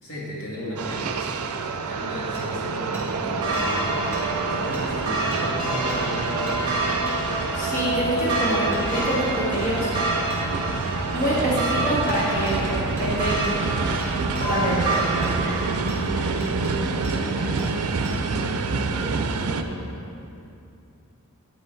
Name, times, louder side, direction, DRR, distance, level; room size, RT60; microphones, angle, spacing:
voice 1, 0.0-1.3 1.9-3.8 4.2-6.8 15.3-15.7 16.1-20.0, left 1 dB, 75° left, -6 dB, 1.9 m, -35 dB
sound 1, 0.8-19.6, right 4 dB, 75° right, 0.5 m, -28 dB
Hammer, 2.3-2.4 2.9-3.1 3.5-3.6 4.1-4.2 4.7-4.9 5.3-5.4 5.9-6.0 6.5-6.6 7.1-7.2 7.6-7.7 8.2-8.3 8.7-8.8 10.3-10.4 12.1-12.2 12.5-12.6 13.0-13.1 13.4-13.6 14.0-14.5 14.9-15.3 15.9-16.0 16.4-16.7 17.0-17.2 17.6-17.7 18.0-18.2, equal, 10° left, 2.1 m, -42 dB
sound 2, 3.1-15.7, right 2 dB, 20° right, 1.5 m, -28 dB
voice 2, 7.5-9.9 11.1-13.7 14.4-15.0, equal, 35° left, -7 dB, 1.8 m, -25 dB
9.8 x 5.5 x 4.5 m, 2.6 s
head